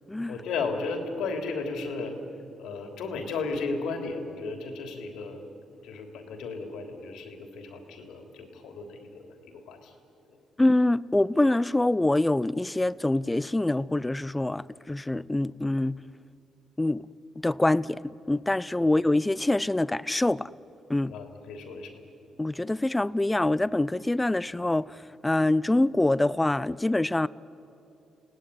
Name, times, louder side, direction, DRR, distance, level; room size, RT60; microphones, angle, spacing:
voice 1, 0.3-2.1 2.6-5.4 5.7-9.9 10.3-10.4 21.1-22.0, left 4 dB, 85° left, 3.3 m, -34 dB
voice 2, 10.6-16.0 16.8-17.0 17.4-18.0 18.3-20.5 20.9-21.1 22.4-27.3, left 2 dB, 10° left, 0.5 m, -25 dB
30.0 x 18.0 x 9.8 m
cardioid pair, 90°, 0 cm